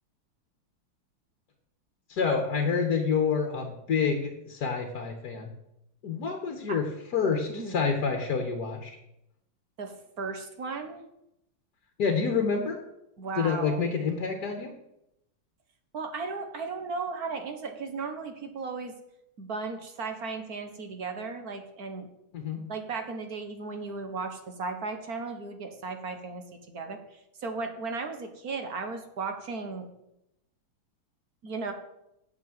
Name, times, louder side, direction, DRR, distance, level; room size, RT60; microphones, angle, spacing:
voice 1, 2.1-5.5 6.0-6.9 7.1-9.0 12.0-12.8 13.4-14.7 22.3-22.6, left 5 dB, 55° left, 3 dB, 1.8 m, -28 dB
voice 2, 9.8-11.0 13.2-13.9 15.9-18.9 19.4-22.1 22.7-29.9 31.4-31.7, right 4 dB, 50° right, 5 dB, 1.6 m, -36 dB
9.1 x 7.6 x 7.7 m, 0.84 s
omnidirectional pair, 2.2 m